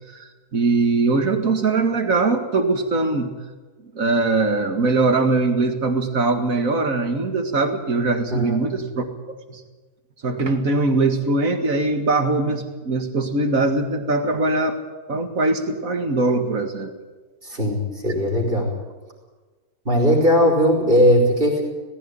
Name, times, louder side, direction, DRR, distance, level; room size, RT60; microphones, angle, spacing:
voice 1, 0.5-3.3 3.9-9.1 9.5-9.6 10.2-14.8 15.1-16.9, right 3 dB, 60° right, 6 dB, 2.3 m, -21 dB
voice 2, 8.3-8.8 17.4-18.7 19.8-21.6, equal, 35° right, 1 dB, 4.7 m, -18 dB
18.5 x 15.5 x 9.9 m, 1.3 s
omnidirectional pair, 1.6 m